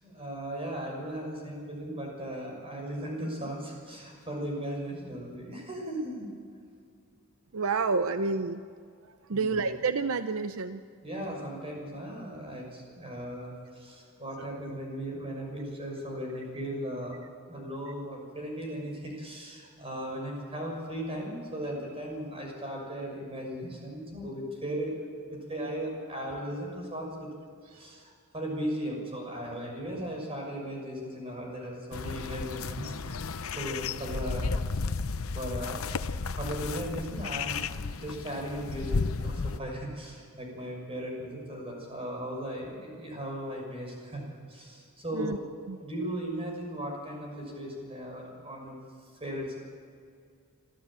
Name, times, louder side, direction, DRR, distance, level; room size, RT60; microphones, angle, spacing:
voice 1, 0.0-6.3 9.3-9.7 11.0-17.2 17.5-27.3 27.7-34.9 35.3-35.9 36.4-37.6 38.0-45.4 45.8-48.8 49.2-49.6, equal, 25° right, 0 dB, 6.3 m, -37 dB
voice 2, 7.5-8.6 9.3-10.8 45.1-45.4 45.7-45.8, right 4 dB, 70° right, 10 dB, 0.7 m, -29 dB
sound 1, 31.9-39.6, left 4 dB, 70° left, 0.7 m, -33 dB
26.5 x 14.0 x 8.9 m, 2.2 s
head